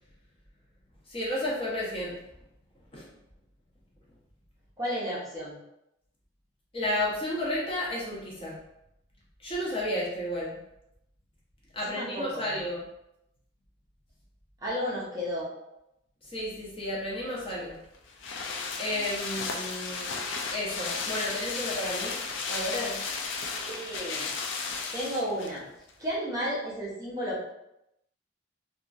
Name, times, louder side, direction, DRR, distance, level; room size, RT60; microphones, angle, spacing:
voice 1, 1.1-2.2 2.9-3.1 6.7-8.6 9.4-10.6 11.7-12.8 16.2-17.8 18.8-20.1 20.5-22.2 22.5-23.0, left 1 dB, 30° left, -6 dB, 0.7 m, -32 dB
voice 2, 4.8-5.6 11.9-12.5 14.6-15.5 23.6-24.3 24.9-25.6 26.0-27.5, equal, 15° right, -7 dB, 0.6 m, -32 dB
sound 1, 17.4-25.6 25.9-26.0, left 4 dB, 65° left, 0.4 m, -34 dB
2.8 x 2.5 x 2.3 m, 0.83 s
head